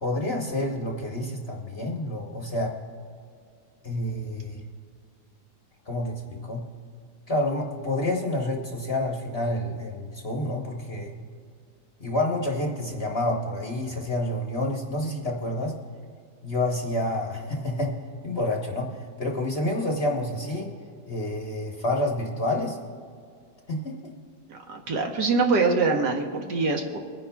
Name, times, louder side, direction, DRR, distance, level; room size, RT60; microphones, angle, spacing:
voice 1, 0.0-2.7 3.8-4.6 5.9-6.6 7.3-11.1 12.0-15.7 16.4-18.0 18.2-18.9 19.2-20.7 21.1-22.8 23.7-24.1, left 1 dB, 40° left, -1 dB, 1.1 m, -28 dB
voice 2, 24.5-27.0, right 4 dB, 65° right, 3 dB, 1.5 m, -24 dB
24.0 x 10.0 x 2.3 m, 2.2 s
omnidirectional pair, 2.1 m